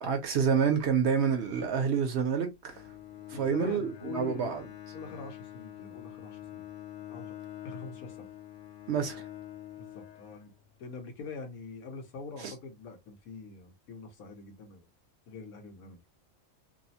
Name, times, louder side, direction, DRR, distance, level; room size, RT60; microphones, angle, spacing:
voice 1, 0.0-2.7 3.3-4.6 8.9-9.2 12.4-12.5, right 7 dB, 60° right, 0.8 m, -28 dB
Bowed string instrument, 2.7-10.9, left 12 dB, 65° left, 0.9 m, -46 dB
voice 2, 3.3-4.5 4.9-6.7 7.1-7.3 7.6-8.3 9.8-10.5 10.8-14.9 15.3-16.0, left 4 dB, 80° left, 1.3 m, -43 dB
2.9 x 2.0 x 2.7 m
omnidirectional pair, 1.5 m